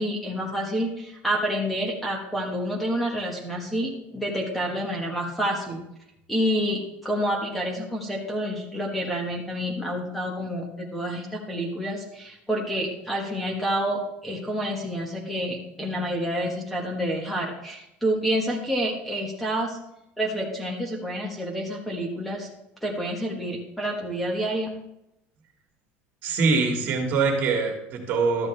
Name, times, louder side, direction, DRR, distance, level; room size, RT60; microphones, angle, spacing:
voice 1, 0.0-5.8 6.3-19.8 20.2-22.5 22.8-24.7, equal, ahead, 0 dB, 1.3 m, -28 dB
voice 2, 26.2-28.5, right 4 dB, 45° right, 1 dB, 2.0 m, -23 dB
12.5 x 8.8 x 3.3 m, 0.85 s
cardioid pair, 160°, 5 cm